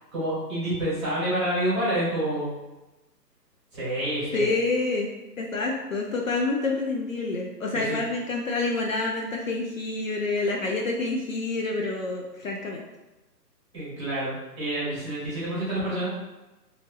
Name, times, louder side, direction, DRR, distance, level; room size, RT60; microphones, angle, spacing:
voice 1, 0.1-2.6 3.7-4.5 7.7-8.0 13.7-16.1, right 1 dB, 15° right, -10 dB, 0.9 m, -28 dB
voice 2, 4.3-5.1 5.4-12.8, left 3 dB, 55° left, 0 dB, 0.5 m, -28 dB
2.8 x 2.8 x 2.8 m, 1.1 s
hypercardioid pair, 165°, 50 cm